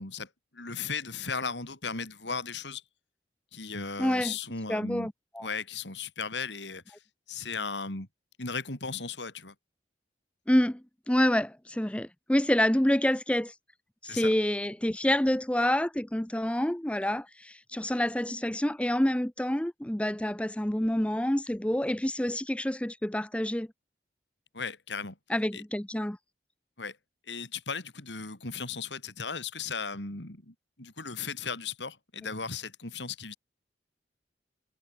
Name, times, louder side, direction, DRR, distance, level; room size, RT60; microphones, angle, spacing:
voice 1, 0.0-2.8 3.5-5.1 5.4-7.0 7.3-8.1 8.4-9.5 14.0-14.3 24.5-25.2 25.5-25.6 26.8-27.0 27.3-33.4, left 5 dB, 90° left, 4.0 m, -36 dB
voice 2, 4.0-4.4 4.7-5.5 10.5-10.8 11.1-13.5 14.0-23.7 25.3-26.2, left 1 dB, 5° left, 0.6 m, -27 dB
head